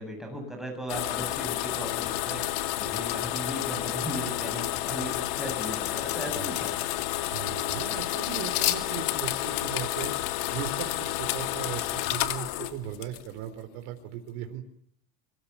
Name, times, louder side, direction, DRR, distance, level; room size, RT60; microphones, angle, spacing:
voice 1, 0.0-6.8, right 1 dB, ahead, 3 dB, 7.6 m, -37 dB
sound 1, 0.9-13.5, left 15 dB, 55° left, 2.3 m, -30 dB
voice 2, 7.3-10.1 10.5-14.6, right 10 dB, 55° right, 6 dB, 4.1 m, -38 dB
25.0 x 24.0 x 7.2 m, 0.70 s
supercardioid pair, 165°, 29 cm